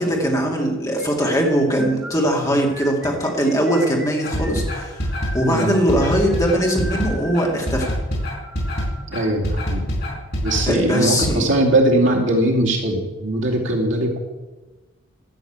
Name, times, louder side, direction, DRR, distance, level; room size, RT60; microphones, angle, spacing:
voice 1, 0.0-7.9 10.7-11.4, equal, 15° left, -1 dB, 2.4 m, -21 dB
sound 1, 1.0-9.0, equal, 5° right, 5.0 m, -38 dB
sound 2, 4.2-11.3, equal, 50° left, 5.3 m, -25 dB
voice 2, 9.1-9.9 10.4-14.2, right 1 dB, 65° right, -1 dB, 2.6 m, -20 dB
13.0 x 7.0 x 8.7 m, 1.2 s
head